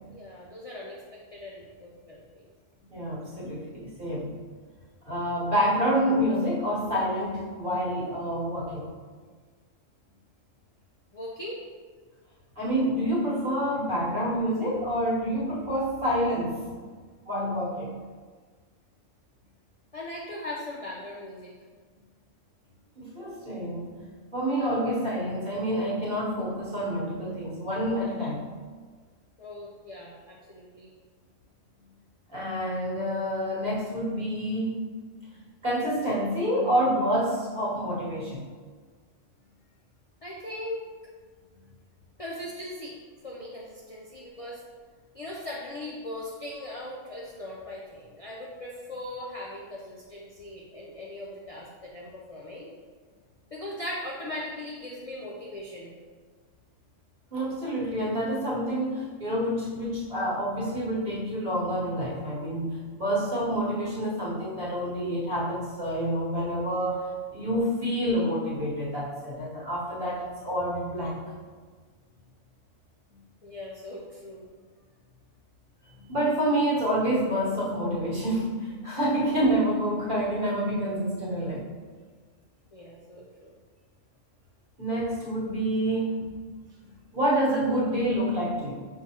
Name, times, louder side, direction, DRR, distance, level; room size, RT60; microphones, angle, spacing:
voice 1, 0.1-2.5 11.1-11.6 19.9-21.5 29.4-30.9 40.2-40.8 42.2-43.0 43.2-44.6 45.1-52.7 53.5-56.0 73.4-74.5 82.7-83.5, left 1 dB, 70° left, -4 dB, 0.3 m, -39 dB
voice 2, 2.9-4.3 5.0-8.8 12.6-16.6 17.2-17.9 23.0-23.9 24.3-28.4 32.3-34.8 35.3-38.5 57.3-67.1 67.3-71.2 75.9-81.7 84.8-86.2 86.8-86.9 87.1-88.9, equal, 45° right, -7 dB, 1.2 m, -28 dB
5.9 x 2.7 x 2.8 m, 1.5 s
omnidirectional pair, 1.3 m